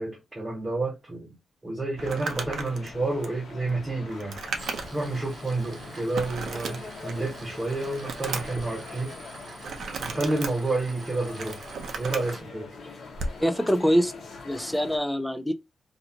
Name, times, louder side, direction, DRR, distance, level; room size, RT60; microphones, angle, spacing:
voice 1, 0.0-1.3 1.6-4.4 4.9-9.1 10.0-11.7 12.0-12.7, right 2 dB, 20° right, 0.8 m, -30 dB
Crumpling crinkling, 1.9-5.1 5.5-5.6 6.1-7.3 7.7-8.6 9.6-10.5 11.1-12.3 13.1-13.4, right 4 dB, 80° right, 0.5 m, -35 dB
sound 1, 2.0-15.0, left 3 dB, 85° left, 0.8 m, -44 dB
Tools, 4.4-12.4, right 3 dB, 50° right, 0.8 m, -46 dB
voice 2, 13.4-14.1 14.4-15.5, equal, 5° left, 0.4 m, -24 dB
2.9 x 2.5 x 2.2 m
wide cardioid pair, 125°, 0 cm